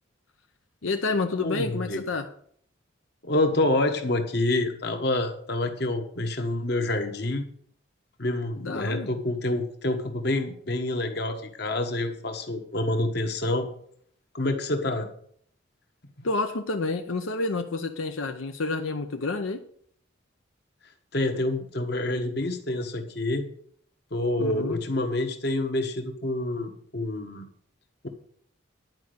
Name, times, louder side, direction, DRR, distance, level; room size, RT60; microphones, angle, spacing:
voice 1, 0.8-2.3 8.6-9.1 16.2-19.6 24.4-24.8, left 3 dB, 85° left, 5 dB, 0.8 m, -29 dB
voice 2, 1.4-2.0 3.2-7.4 8.2-13.7 14.3-15.1 21.1-23.5 24.1-27.5 28.0-28.1, left 2 dB, 55° left, 6 dB, 1.4 m, -27 dB
11.0 x 5.2 x 8.1 m, 0.63 s
head